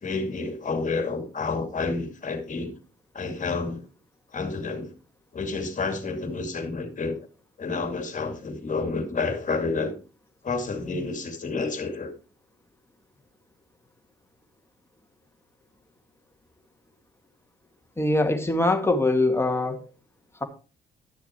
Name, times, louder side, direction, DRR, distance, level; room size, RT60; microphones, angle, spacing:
voice 1, 0.0-2.8 3.1-3.8 4.3-4.9 5.3-7.3 7.6-9.9 10.4-12.1, left 3 dB, 40° left, 2.4 m, -29 dB
voice 2, 18.0-19.9, left 2 dB, 10° left, 2.0 m, -23 dB
12.0 x 6.9 x 4.4 m
cardioid pair, 90°, 20 cm